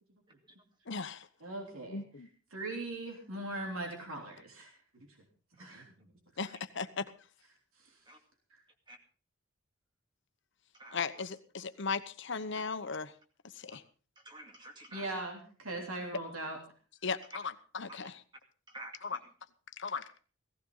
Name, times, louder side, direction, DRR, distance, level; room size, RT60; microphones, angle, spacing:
voice 1, 0.9-1.3 1.9-2.3 6.4-7.1 10.9-13.1 13.6-13.8 17.0-18.2 19.0-19.2 19.8-20.2, left 5 dB, 60° left, 11 dB, 1.0 m, -37 dB
voice 2, 1.4-2.0 2.5-4.7 5.6-6.1 7.8-8.0 8.5-8.6 14.9-16.6, right 2 dB, 85° right, 1 dB, 3.3 m, -40 dB
voice 3, 14.2-15.1 17.3-17.4 17.9-18.1 18.7-19.2, right 1 dB, 20° right, 4 dB, 2.3 m, -49 dB
17.0 x 15.0 x 3.9 m, 0.38 s
head